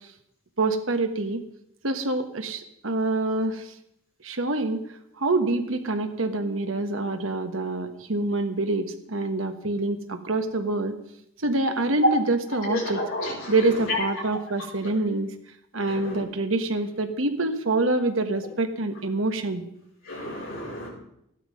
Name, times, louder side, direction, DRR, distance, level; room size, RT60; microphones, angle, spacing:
voice 1, 0.6-1.4 1.8-3.6 4.2-4.8 5.2-10.9 11.4-13.0 13.5-15.3 15.7-19.6, right 2 dB, 85° right, 7 dB, 1.5 m, -26 dB
voice 2, 12.7-13.5 13.9-14.0 15.9-16.2 20.1-20.9, left 2 dB, 85° left, -3 dB, 6.5 m, -31 dB
14.5 x 12.0 x 5.3 m, 0.77 s
head